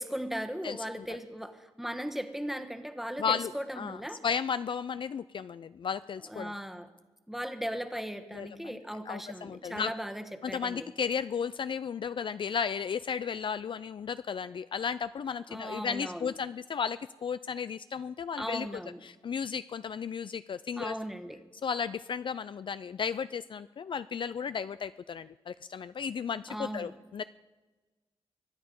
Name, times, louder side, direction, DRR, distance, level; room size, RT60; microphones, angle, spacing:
voice 1, 0.0-4.2 6.3-6.9 7.3-10.9 15.5-16.3 18.4-19.0 20.8-21.4 26.5-26.9, equal, ahead, 7 dB, 1.3 m, -37 dB
voice 2, 3.2-6.5 8.3-8.8 9.1-9.9 10.4-18.7 19.0-20.9 21.6-27.2, left 6 dB, 50° left, 14 dB, 0.4 m, -34 dB
24.0 x 9.6 x 5.4 m, 1.3 s
cardioid pair, 85°, 11 cm